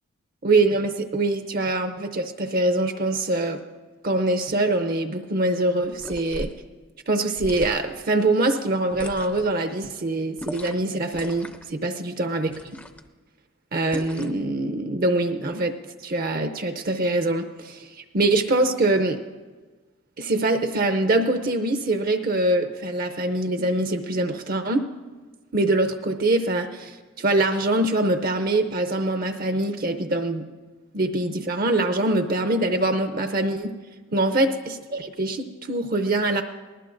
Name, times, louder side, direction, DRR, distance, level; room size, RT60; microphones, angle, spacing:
voice 1, 0.4-3.6 4.0-6.5 7.1-12.5 13.7-15.7 16.0-19.2 20.2-24.8 25.5-30.4 30.9-33.7 34.1-36.4, right 2 dB, 45° right, 8 dB, 0.6 m, -24 dB
sound 1, 5.9-6.6 7.4-8.0 8.9-9.5 10.4-10.9 11.1-11.7 12.5-13.1 13.9-14.4, left 1 dB, 5° left, 0.5 m, -38 dB
20.5 x 18.5 x 2.6 m, 1.3 s
head